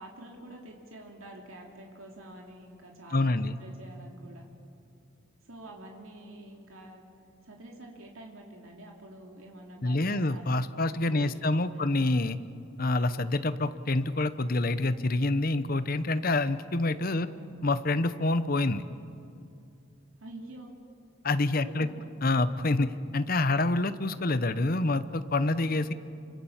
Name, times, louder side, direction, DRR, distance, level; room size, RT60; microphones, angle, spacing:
voice 1, 0.0-4.4 5.4-7.0 7.4-10.4 11.1-11.9 17.1-17.5 20.2-20.8 21.6-22.1, right 1 dB, 85° right, 0 dB, 2.9 m, -47 dB
voice 2, 3.1-3.6 9.8-12.4 12.8-17.3 17.6-18.8 21.2-21.9 22.2-25.9, left 2 dB, 45° left, 12 dB, 0.9 m, -27 dB
28.5 x 25.0 x 7.3 m, 2.6 s
head